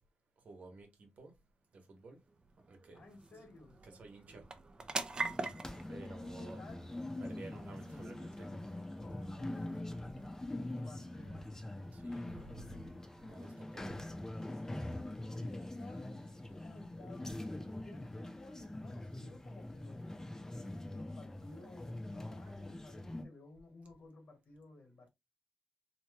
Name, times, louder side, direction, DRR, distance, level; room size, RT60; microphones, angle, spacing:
voice 1, 0.4-1.3 1.7-2.2 2.7-3.0 3.3-3.4 3.8-4.5 5.9-6.7 7.2-8.5 10.1-10.3 11.2-11.4 11.9-12.9 13.2-14.0 14.3-14.4, right 2 dB, 70° right, 1.1 m, -53 dB
sound 1, 1.5-16.3, right 3 dB, 35° right, 0.5 m, -48 dB
voice 2, 2.9-3.8 6.2-6.9 8.9-9.9 10.6-11.4 15.1-16.2 16.5-17.4 17.7-20.3 20.9-25.1, left 2 dB, 70° left, 1.4 m, -56 dB
sound 2, 5.2-23.2, left 1 dB, 20° left, 0.7 m, -44 dB
2.9 x 2.2 x 3.1 m
cardioid pair, 70°, 3 cm